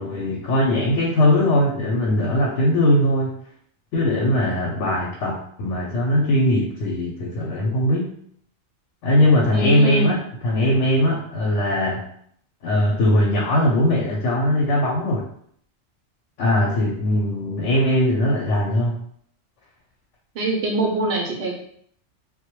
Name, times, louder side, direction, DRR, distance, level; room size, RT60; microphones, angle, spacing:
voice 1, 0.0-3.4 3.9-8.1 9.0-12.0 12.6-15.2 16.4-19.0, left 1 dB, 90° left, -2 dB, 0.9 m, -20 dB
voice 2, 9.5-10.2 20.3-21.5, right 2 dB, 65° right, 0 dB, 0.8 m, -23 dB
2.2 x 2.1 x 2.9 m, 0.65 s
omnidirectional pair, 1.2 m